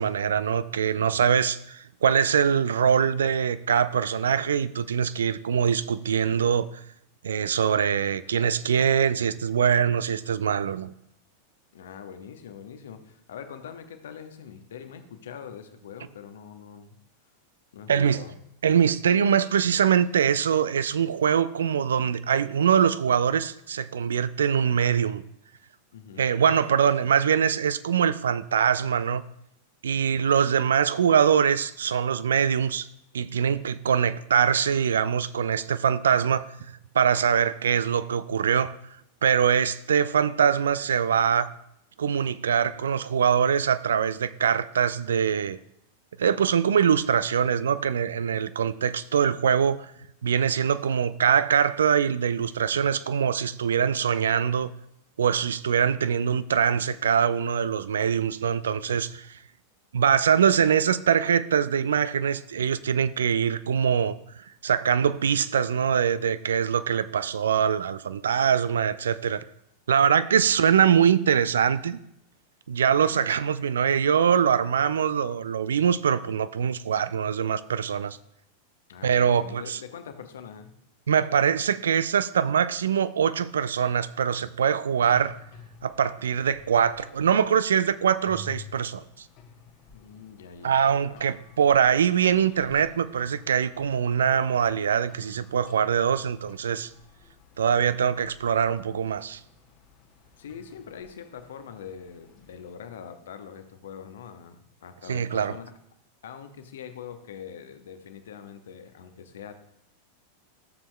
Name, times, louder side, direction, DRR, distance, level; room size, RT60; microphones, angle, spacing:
voice 1, 0.0-6.7 7.2-10.9 17.9-18.2 18.6-25.2 26.2-29.2 29.8-32.9 33.1-36.5 36.9-38.7 39.2-41.5 42.0-45.6 46.2-49.9 50.2-54.7 55.2-59.3 59.9-64.2 64.6-69.4 69.9-72.0 72.7-78.2 79.0-79.8 81.1-85.3 85.8-89.0 90.6-96.9 97.6-99.4 105.1-105.5, right 7 dB, 65° right, 15 dB, 0.3 m, -23 dB
voice 2, 11.7-17.0 17.7-18.4 25.9-26.3 73.1-73.3 78.9-80.7 89.9-91.2 100.4-105.7 106.2-109.5, left 7 dB, 60° left, 8 dB, 0.9 m, -43 dB
sound 1, 84.9-102.8, left 3 dB, 40° left, 1.1 m, -51 dB
14.0 x 7.0 x 2.2 m, 0.77 s
figure-of-eight pair, 90°, 0 cm